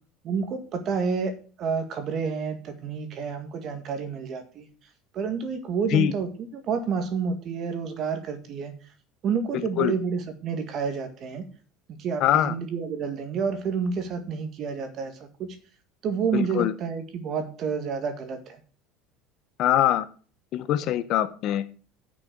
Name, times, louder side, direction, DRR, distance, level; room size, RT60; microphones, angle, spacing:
voice 1, 0.2-1.3 1.6-4.7 5.1-8.7 9.2-11.5 11.9-15.1 15.4-15.6 16.0-18.6, right 5 dB, 35° right, 8 dB, 1.9 m, -29 dB
voice 2, 9.5-9.9 12.2-12.5 16.3-16.7 19.6-20.1 20.5-21.6, left 12 dB, 45° left, 12 dB, 0.8 m, -23 dB
9.8 x 6.2 x 6.6 m, 0.40 s
cardioid pair, 165°, 0 cm